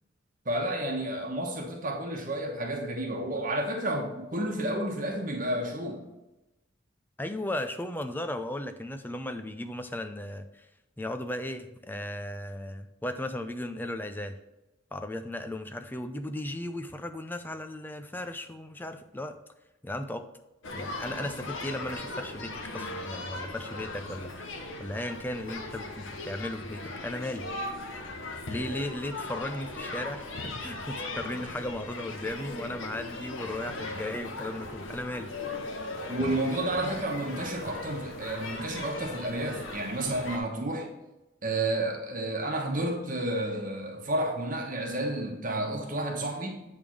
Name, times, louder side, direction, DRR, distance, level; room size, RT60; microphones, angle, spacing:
voice 1, 0.4-6.0 36.1-40.9 41.4-46.6, right 1 dB, 45° right, 0 dB, 1.2 m, -31 dB
voice 2, 7.2-10.7 11.0-14.3 14.9-19.4 19.8-20.3 20.7-27.5 28.5-35.3, left 1 dB, 10° left, 8 dB, 0.5 m, -36 dB
sound 1, 20.6-40.4, left 2 dB, 85° left, 1.1 m, -38 dB
8.7 x 3.6 x 6.2 m, 0.98 s
head